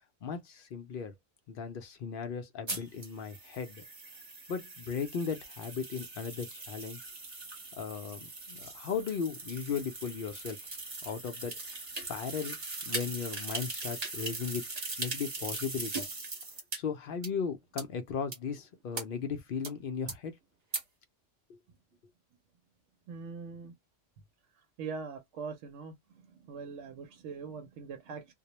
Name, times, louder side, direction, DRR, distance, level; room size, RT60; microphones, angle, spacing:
voice 1, 0.2-1.1 1.5-3.8 4.5-7.0 7.8-10.6 11.0-11.5 11.9-12.6 12.8-14.6 15.0-16.0 16.8-20.4 21.5-21.6, left 6 dB, 60° left, 0.6 m, -36 dB
sound 1, 2.7-16.8 17.2-17.3 17.8-17.9 18.3-18.4 18.9-19.0 19.6-19.7 20.1-20.2 20.7-20.8, right 3 dB, 35° right, 0.9 m, -40 dB
voice 2, 23.1-23.7 24.8-26.0 26.2-28.3, right 5 dB, 75° right, 0.9 m, -42 dB
2.2 x 2.0 x 2.9 m
omnidirectional pair, 1.3 m